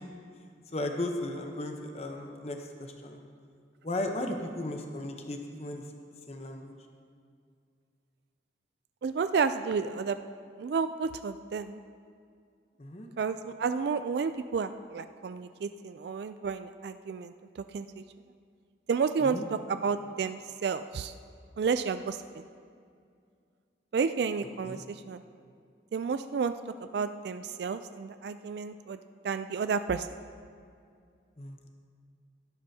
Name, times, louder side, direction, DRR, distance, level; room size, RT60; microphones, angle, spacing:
voice 1, 0.7-3.2 3.8-5.8 6.3-6.7 12.8-13.1 19.2-19.5 24.6-24.8 31.4-31.6, left 1 dB, 35° left, 3 dB, 0.8 m, -35 dB
voice 2, 9.0-10.2 10.6-11.8 13.2-17.3 17.7-18.0 18.9-21.1 21.6-22.4 23.9-25.2 25.9-26.5 26.8-29.0 29.2-30.1, right 5 dB, 70° right, 10 dB, 0.3 m, -31 dB
17.0 x 10.5 x 2.8 m, 2.3 s
head